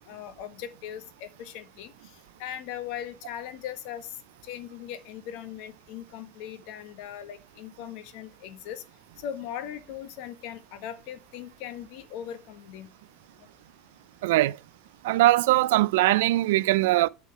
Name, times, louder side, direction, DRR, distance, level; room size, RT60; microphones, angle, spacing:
voice 1, 0.1-1.9 2.4-4.1 4.4-8.8 9.2-12.9, left 10 dB, 70° left, 1.3 m, -39 dB
voice 2, 14.2-14.6 15.0-17.1, right 17 dB, 85° right, 0.4 m, -21 dB
8.2 x 4.3 x 5.9 m
supercardioid pair, 120°, 0 cm